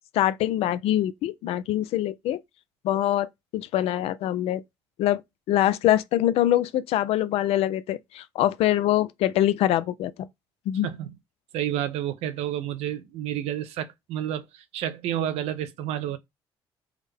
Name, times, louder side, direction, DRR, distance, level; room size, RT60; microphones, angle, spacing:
voice 1, 0.1-2.4 2.8-3.3 3.5-4.6 5.0-5.2 5.5-10.3 10.7-10.9, left 13 dB, 75° left, 0.4 m, -24 dB
voice 2, 10.8-11.1 11.5-16.2, right 11 dB, 80° right, 0.5 m, -30 dB
3.5 x 2.1 x 3.4 m
supercardioid pair, 75°, 10 cm